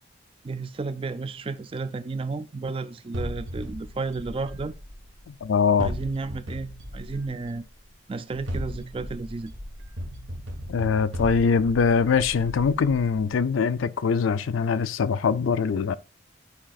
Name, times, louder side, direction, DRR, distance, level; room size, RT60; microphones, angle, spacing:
voice 1, 0.4-4.7 5.8-7.6 8.1-9.5, right 3 dB, 25° right, 0.3 m, -32 dB
sound 1, 3.1-5.3 5.8-7.6 8.3-13.4, equal, 75° right, 1.3 m, -36 dB
voice 2, 5.3-5.9 10.7-15.9, left 5 dB, 80° left, 0.4 m, -23 dB
11.5 x 4.9 x 2.3 m
head